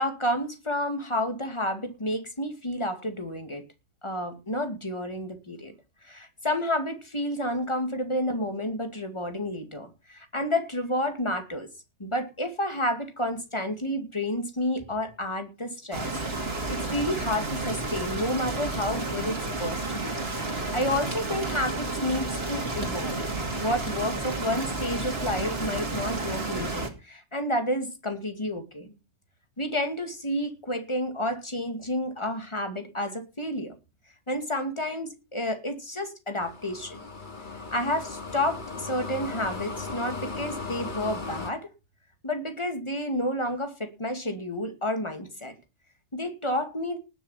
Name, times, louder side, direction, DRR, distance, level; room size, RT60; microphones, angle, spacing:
voice 1, 0.0-3.6 4.0-5.7 6.0-11.7 12.0-16.1 16.4-20.1 20.4-23.2 23.5-28.9 29.6-33.7 34.3-37.0 37.7-41.7 42.2-45.5 46.1-47.0, left 1 dB, 25° left, 2.3 m, -30 dB
sound 1, 15.9-26.9, right 2 dB, 55° right, 2.9 m, -31 dB
sound 2, 36.4-41.5, left 3 dB, 40° left, 2.5 m, -37 dB
19.0 x 6.9 x 5.7 m
omnidirectional pair, 1.2 m